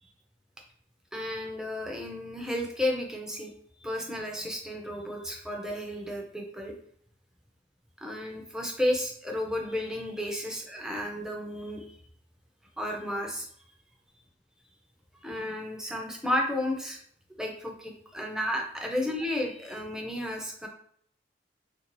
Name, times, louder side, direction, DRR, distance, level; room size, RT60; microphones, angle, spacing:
voice 1, 1.1-3.5 3.8-6.7 8.0-12.0 12.8-13.5 15.2-17.0 17.4-20.7, left 1 dB, 5° right, 0 dB, 0.5 m, -32 dB
3.3 x 2.6 x 3.0 m, 0.62 s
head